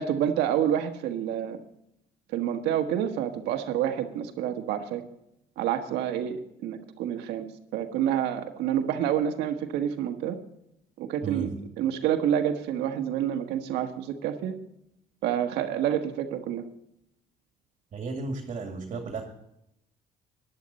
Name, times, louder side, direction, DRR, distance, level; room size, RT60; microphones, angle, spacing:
voice 1, 0.0-1.6 2.3-5.0 5.6-7.5 7.7-10.4 11.0-11.5 11.8-14.5 15.2-16.6, right 10 dB, 85° right, 5 dB, 1.5 m, -28 dB
voice 2, 17.9-19.2, right 4 dB, 45° right, 3 dB, 2.3 m, -34 dB
14.5 x 10.5 x 4.2 m, 0.79 s
cardioid pair, 110°, 17 cm